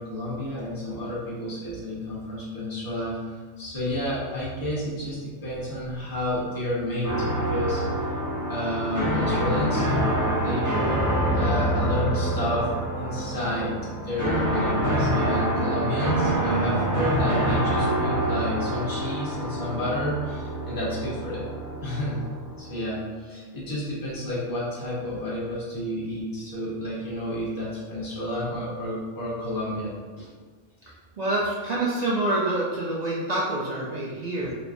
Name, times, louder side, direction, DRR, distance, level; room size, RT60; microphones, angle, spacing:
voice 1, 0.0-7.8 8.5-9.9 10.3-11.0 11.3-12.7 13.0-21.5 21.8-22.2 22.6-30.3, left 1 dB, 20° left, -8 dB, 0.9 m, -30 dB
Dark piano, 7.0-23.0, right 1 dB, 20° right, 0.6 m, -26 dB
voice 2, 30.8-34.6, right 2 dB, 65° right, -5 dB, 0.4 m, -27 dB
3.4 x 3.0 x 2.5 m, 1.5 s
omnidirectional pair, 1.3 m